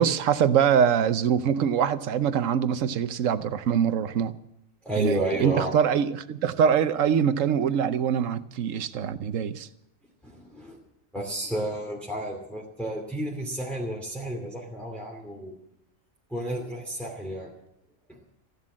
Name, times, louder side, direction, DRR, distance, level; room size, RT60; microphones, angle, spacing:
voice 1, 0.0-4.3 5.0-9.7, right 8 dB, 75° right, 13 dB, 1.1 m, -24 dB
voice 2, 4.8-5.7 10.2-10.8 11.1-15.5 16.3-17.5 18.1-18.2, right 1 dB, ahead, -3 dB, 2.6 m, -31 dB
15.0 x 11.0 x 7.4 m, 0.81 s
omnidirectional pair, 1.4 m